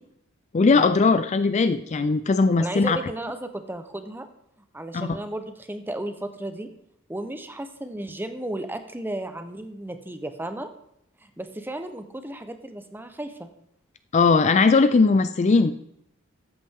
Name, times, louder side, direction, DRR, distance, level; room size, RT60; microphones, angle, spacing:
voice 1, 0.5-3.0 4.9-5.1 14.1-15.7, left 4 dB, 35° left, 11 dB, 0.4 m, -19 dB
voice 2, 2.6-4.3 4.7-6.7 7.1-10.7 11.2-13.5, right 1 dB, 10° right, 8 dB, 0.8 m, -34 dB
13.0 x 8.5 x 3.6 m, 0.76 s
head